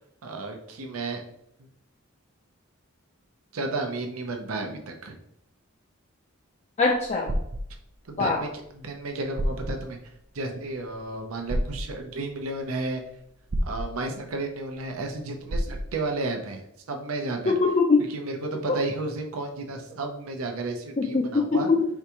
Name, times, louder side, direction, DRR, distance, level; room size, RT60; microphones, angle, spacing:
voice 1, 0.2-1.2 1.6-1.7 3.5-5.2 8.1-8.5 8.8-10.0 10.3-13.0 13.7-17.5 18.1-21.7, right 2 dB, 85° right, 3 dB, 0.7 m, -32 dB
voice 2, 6.8-7.4 8.2-8.4 17.5-18.1 21.0-21.9, left 3 dB, 35° left, 0 dB, 0.4 m, -22 dB
sound 1, 6.9-7.7 9.0-9.1 9.4-9.8 11.5-11.8 13.5-13.9 15.5-15.9, equal, 45° right, 0.5 m, -27 dB
4.6 x 3.5 x 2.9 m, 0.75 s
head